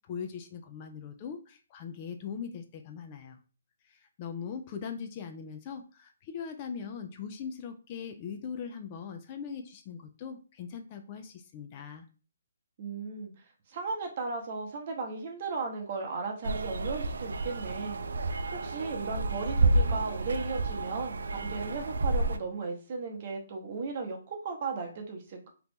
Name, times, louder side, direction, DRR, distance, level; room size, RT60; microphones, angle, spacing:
voice 1, 0.1-3.4 3.9-12.1, left 6 dB, 30° left, 6 dB, 0.3 m, -40 dB
voice 2, 12.8-13.3 13.7-25.5, right 4 dB, 40° right, 2 dB, 0.8 m, -36 dB
sound 1, 16.4-22.4, right 2 dB, 80° right, 0.4 m, -30 dB
2.9 x 2.4 x 3.5 m, 0.36 s
hypercardioid pair, 160°, 0 cm